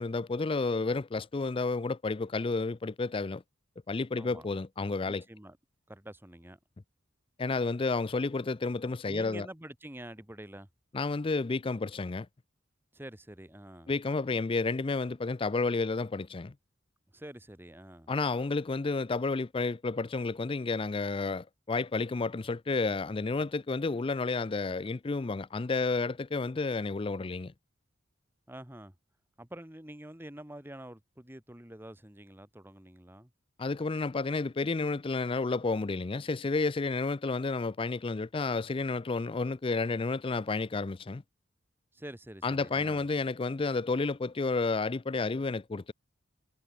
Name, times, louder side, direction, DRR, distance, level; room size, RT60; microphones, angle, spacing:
voice 1, 0.0-3.4 3.9-5.2 7.4-9.5 10.9-12.3 13.9-16.5 18.1-27.5 33.6-41.2 42.4-45.9, left 3 dB, 25° left, 0.4 m, -31 dB
voice 2, 4.1-4.5 5.1-5.6 5.9-6.6 9.1-10.7 12.9-13.9 17.1-18.1 28.5-28.9 29.4-33.3 41.9-43.1, right 1 dB, 10° right, 1.8 m, -47 dB
head